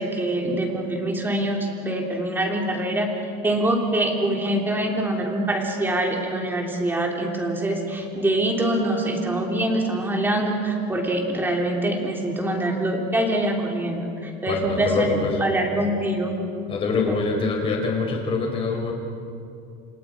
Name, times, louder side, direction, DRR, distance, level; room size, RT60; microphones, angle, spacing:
voice 1, 0.0-3.1 3.4-15.1 15.4-16.3, right 1 dB, 10° right, 1 dB, 3.1 m, -24 dB
voice 2, 14.5-15.4 16.7-18.9, left 4 dB, 25° left, 2 dB, 4.1 m, -24 dB
30.0 x 28.0 x 5.0 m, 2.7 s
cardioid pair, 160°, 21 cm